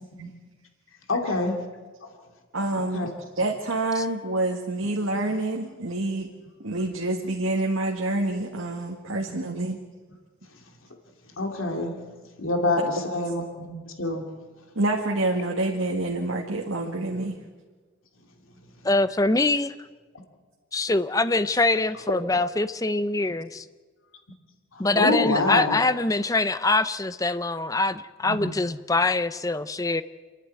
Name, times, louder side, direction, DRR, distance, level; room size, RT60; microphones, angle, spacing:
voice 1, 1.1-1.6 2.8-3.1 9.2-9.4 11.4-12.0 12.4-13.4 13.7-14.3 24.7-25.8 28.2-28.5, left 2 dB, 85° left, 3 dB, 2.7 m, -26 dB
voice 2, 2.5-3.1 3.3-6.3 6.6-9.8 13.0-13.1 14.7-17.4, right 2 dB, 85° right, 0 dB, 1.8 m, -27 dB
voice 3, 18.8-19.7 20.7-23.6 24.8-30.0, left 2 dB, 15° left, 13 dB, 0.5 m, -24 dB
27.5 x 11.0 x 9.4 m, 1.4 s
head